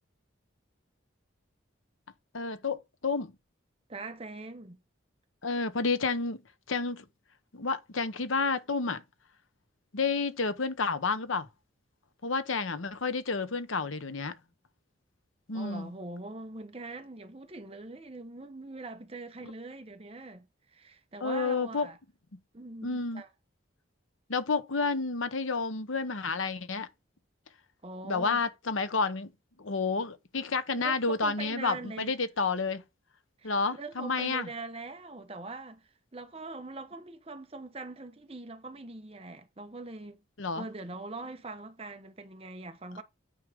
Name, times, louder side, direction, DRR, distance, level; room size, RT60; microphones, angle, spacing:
voice 1, 2.3-3.3 5.4-6.4 6.7-7.0 7.5-9.0 9.9-11.5 12.2-14.3 15.5-15.9 21.2-21.9 22.8-23.2 24.3-26.9 28.0-29.3 29.6-32.8 33.4-34.5 40.4-40.6, left 4 dB, 80° left, 1.0 m, -30 dB
voice 2, 3.9-4.8 15.5-22.0 22.5-23.3 27.8-28.4 30.7-32.1 33.4-40.2 40.5-43.0, right 2 dB, 30° right, 1.0 m, -42 dB
9.2 x 4.9 x 3.6 m
head